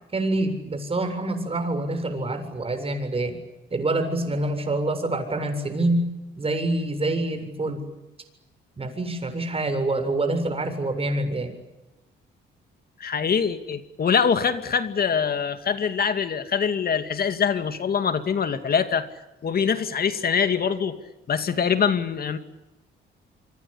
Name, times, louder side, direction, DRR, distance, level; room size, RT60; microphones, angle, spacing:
voice 1, 0.1-3.4 3.7-7.8 8.8-11.5, right 2 dB, 30° right, 7 dB, 7.5 m, -26 dB
voice 2, 13.0-19.1 19.4-21.0 21.3-22.4, left 6 dB, 50° left, 9 dB, 2.5 m, -24 dB
27.0 x 24.5 x 8.7 m, 1.0 s
cardioid pair, 90°, 20 cm